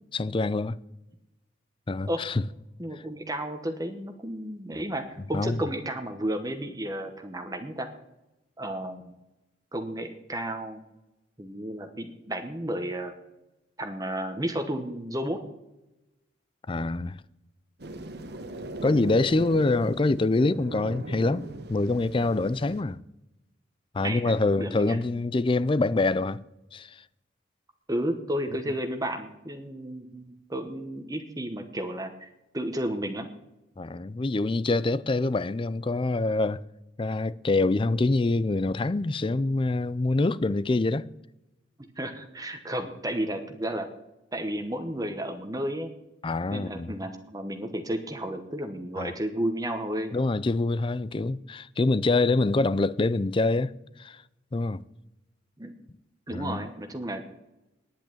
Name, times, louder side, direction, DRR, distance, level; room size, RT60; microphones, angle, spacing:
voice 1, 0.1-0.8 1.9-2.4 5.3-5.6 16.7-17.2 18.8-23.0 23.9-26.4 26.7-27.0 33.8-36.6 37.0-41.1 46.2-47.0 49.0-49.1 50.1-53.7 54.0-54.2 54.5-54.8 56.3-56.6, left 2 dB, 25° left, 0.4 m, -25 dB
voice 2, 2.8-7.9 8.6-9.1 9.7-10.8 11.4-13.1 13.8-15.4 24.0-25.0 27.9-33.3 42.0-43.9 44.3-45.9 46.5-50.1 55.6-55.7 56.3-57.2, right 1 dB, 20° right, 1.1 m, -32 dB
sound 1, 17.8-22.8, right 1 dB, 60° right, 1.1 m, -39 dB
10.5 x 9.0 x 9.0 m
head